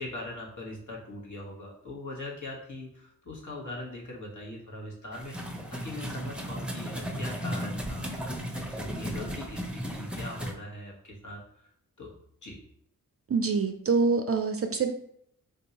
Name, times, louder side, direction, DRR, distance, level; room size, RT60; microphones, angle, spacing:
voice 1, 0.0-8.1 8.7-11.4 12.0-12.1 12.4-12.6, left 1 dB, 50° left, -2 dB, 1.3 m, -41 dB
sound 1, 5.1-10.5, equal, 5° right, 0.7 m, -35 dB
voice 2, 13.3-14.9, right 4 dB, 40° right, 6 dB, 0.5 m, -25 dB
3.7 x 2.7 x 2.9 m, 0.70 s
cardioid pair, 40°, 38 cm